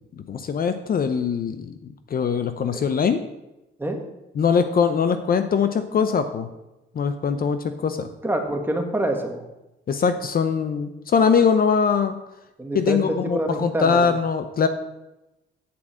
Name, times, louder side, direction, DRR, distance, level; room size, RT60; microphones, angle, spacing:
voice 1, 0.2-3.2 4.4-6.5 6.9-8.1 9.9-12.2 12.7-14.7, left 6 dB, 45° left, 9 dB, 0.7 m, -22 dB
voice 2, 8.2-9.4 12.6-14.2, right 1 dB, 10° right, 3 dB, 1.7 m, -26 dB
8.7 x 4.8 x 7.5 m, 0.96 s
cardioid pair, 90°, 20 cm